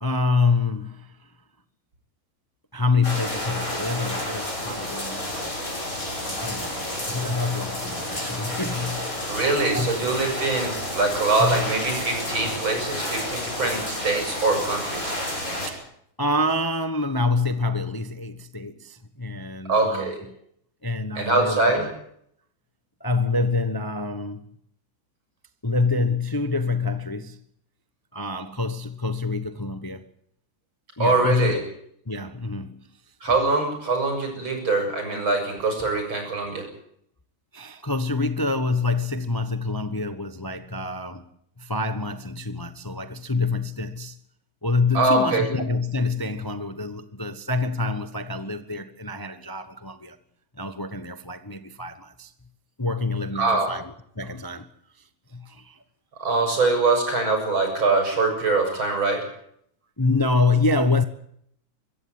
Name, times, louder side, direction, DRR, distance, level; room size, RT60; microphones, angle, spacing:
voice 1, 0.0-1.1 2.7-5.3 6.4-9.1 9.7-9.9 11.4-11.7 15.7-15.8 16.2-20.1 20.8-21.9 23.0-24.4 25.6-27.4 28.1-30.0 31.0-31.6 32.1-32.8 37.5-41.2 41.6-44.2 44.6-50.2 50.6-52.3 52.8-53.8 54.2-54.7 55.3-55.8 60.0-61.0, left 3 dB, 15° left, 0.8 m, -26 dB
sound 1, 3.0-15.7, left 1 dB, 40° left, 7.1 m, -30 dB
voice 2, 9.3-15.1 19.7-20.2 21.1-21.9 31.0-31.6 33.2-36.7 44.9-45.5 53.3-53.7 56.2-59.3, right 3 dB, 75° right, 8.0 m, -23 dB
24.5 x 15.0 x 9.6 m
omnidirectional pair, 2.2 m